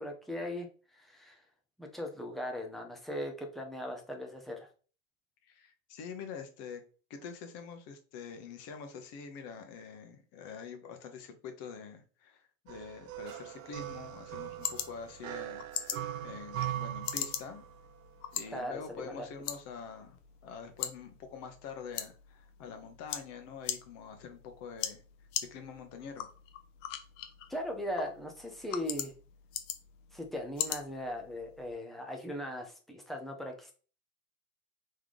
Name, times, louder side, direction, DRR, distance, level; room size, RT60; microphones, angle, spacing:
voice 1, 0.0-1.5 1.8-4.7 18.5-19.3 27.5-29.1 30.1-33.7, equal, ahead, 0.6 m, -39 dB
voice 2, 5.4-6.8 7.1-17.6 18.3-25.0 25.4-26.3, left 6 dB, 40° left, 1.0 m, -46 dB
sound 1, 12.7-17.9, right 13 dB, 80° right, 0.6 m, -40 dB
sound 2, 13.3-20.9 21.4-21.5, right 7 dB, 40° right, 0.9 m, -60 dB
sound 3, 13.7-31.7, left 10 dB, 70° left, 0.7 m, -42 dB
3.5 x 3.3 x 3.7 m
supercardioid pair, 135°, 39 cm